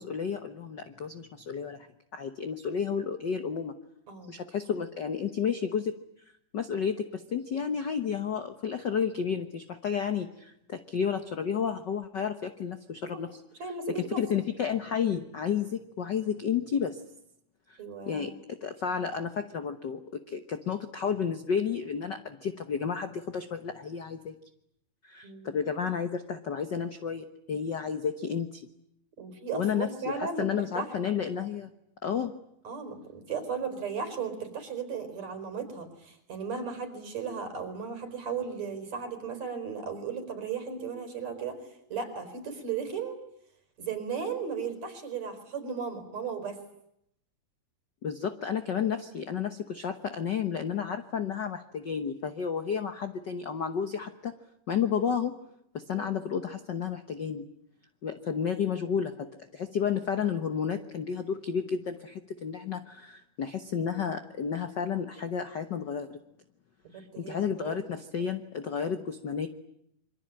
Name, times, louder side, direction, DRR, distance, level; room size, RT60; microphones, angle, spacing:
voice 1, 0.0-1.9 2.1-3.7 4.3-5.9 6.5-13.4 13.9-17.0 17.7-17.8 18.1-24.3 25.0-28.7 29.5-31.7 32.0-32.3 48.0-54.3 54.7-55.3 55.7-57.4 58.0-66.2 66.9-69.5, left 7 dB, 70° left, 9 dB, 1.0 m, -31 dB
voice 2, 4.1-4.4 13.6-14.2 17.8-18.4 25.2-25.6 29.2-30.9 32.6-41.6 41.9-43.2 43.8-46.6 55.9-56.1 66.9-67.8, right 6 dB, 55° right, 8 dB, 5.7 m, -36 dB
27.0 x 24.0 x 8.8 m, 0.77 s
omnidirectional pair, 3.8 m